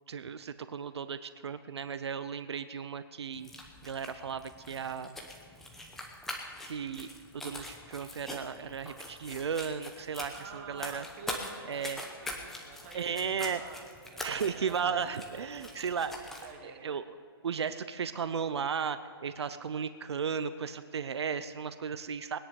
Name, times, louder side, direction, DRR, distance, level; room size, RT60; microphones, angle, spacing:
voice 1, 0.1-3.5 3.8-5.2 6.6-7.1 7.3-11.0 11.7-12.0 12.9-13.6 14.2-16.1 16.6-17.2 17.4-22.4, right 6 dB, 85° right, 12 dB, 0.7 m, -35 dB
sound 1, 3.3-16.5, left 1 dB, ahead, 0.8 m, -44 dB
voice 2, 10.3-16.0 16.3-17.0, right 4 dB, 30° right, 4 dB, 1.3 m, -49 dB
20.0 x 10.0 x 5.3 m, 2.2 s
hypercardioid pair, 170°, 14 cm